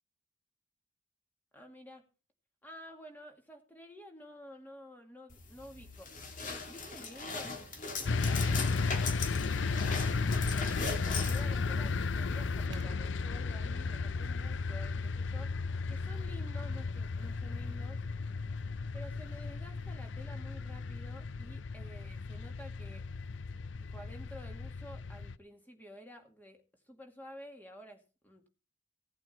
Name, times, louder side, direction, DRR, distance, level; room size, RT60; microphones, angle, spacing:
voice 1, 1.5-2.0 2.6-6.1 6.4-7.7 10.4-15.5 15.9-18.0 18.9-23.0 23.7-26.6 26.9-28.5, equal, 10° left, 4 dB, 2.1 m, -51 dB
sound 1, 5.3-12.7, left 4 dB, 45° left, 2.4 m, -40 dB
sound 2, 8.0-25.3, left 4 dB, 80° left, 0.6 m, -34 dB
Thump thud, 8.5-9.1 10.4-10.9 12.7-13.4, right 3 dB, 70° right, 0.7 m, -48 dB
16.5 x 8.9 x 4.3 m, 0.34 s
head